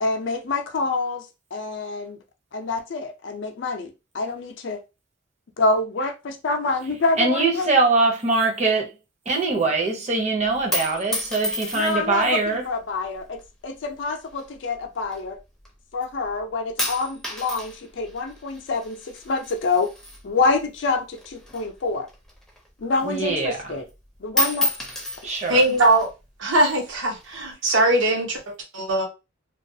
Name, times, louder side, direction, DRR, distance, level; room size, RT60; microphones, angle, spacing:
voice 1, 0.0-2.2 2.5-4.8 5.6-7.7 11.7-15.4 15.9-19.9 20.2-22.1 22.8-23.8 24.2-24.7, left 3 dB, 60° left, 0.4 m, -26 dB
voice 2, 7.2-8.9 9.3-12.6 23.0-23.6 25.2-25.6, right 3 dB, 35° right, 0.7 m, -22 dB
sound 1, 10.4-12.2 13.0-13.5 14.3-15.7 16.0-16.4 16.8-20.8 21.1-22.8 23.2-23.3 23.6-24.0 24.3-26.1 26.9-27.5, left 1 dB, ahead, 0.5 m, -31 dB
voice 3, 25.4-26.1 26.4-29.1, right 1 dB, 75° right, 0.9 m, -21 dB
2.3 x 2.2 x 2.6 m
head